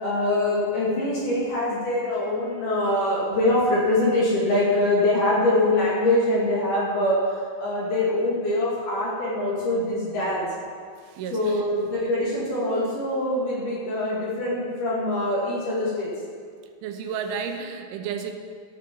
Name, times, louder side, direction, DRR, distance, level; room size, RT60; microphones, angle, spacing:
voice 1, 0.0-7.2 7.6-10.4 11.3-16.1, left 1 dB, 50° left, -6 dB, 3.2 m, -23 dB
voice 2, 11.1-11.7 16.8-18.3, right 6 dB, 90° right, 6 dB, 3.3 m, -32 dB
14.5 x 6.8 x 5.3 m, 2.1 s
omnidirectional pair, 5.3 m